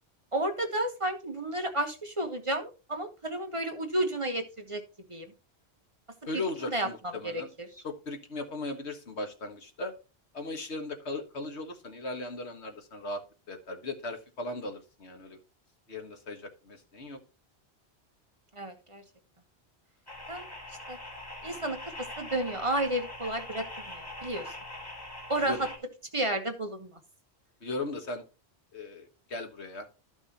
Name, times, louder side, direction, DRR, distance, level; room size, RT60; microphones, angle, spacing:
voice 1, 0.3-4.8 5.1-5.3 6.6-6.9 7.2-7.7 18.5-19.0 20.3-20.5 20.9-21.0 21.4-24.5 25.3-25.7 26.1-27.0, right 1 dB, 30° right, 5 dB, 1.3 m, -32 dB
voice 2, 6.3-7.5 7.8-9.9 10.3-13.2 13.5-15.4 15.9-17.2 25.5-25.7 27.6-28.2 28.7-29.9, left 2 dB, 85° left, 5 dB, 1.8 m, -37 dB
sound 1, 20.1-25.8, left 1 dB, 20° left, 2.2 m, -42 dB
13.0 x 6.2 x 2.9 m, 0.32 s
omnidirectional pair, 1.1 m